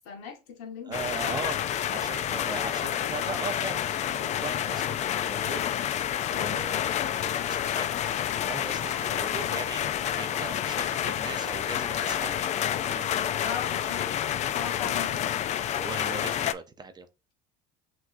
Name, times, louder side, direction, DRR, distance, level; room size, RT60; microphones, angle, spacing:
voice 1, 0.0-0.9 13.4-14.1 14.5-15.3, left 7 dB, 75° left, 1.5 m, -38 dB
voice 2, 0.8-1.6 1.9-5.6 6.3-7.9 8.4-12.4 12.8-13.1 14.8-14.9 15.7-17.1, right 5 dB, 20° right, 0.6 m, -39 dB
sound 1, 0.9-16.5, left 10 dB, 35° left, 0.4 m, -29 dB
6.0 x 3.1 x 2.6 m
supercardioid pair, 115°, 19 cm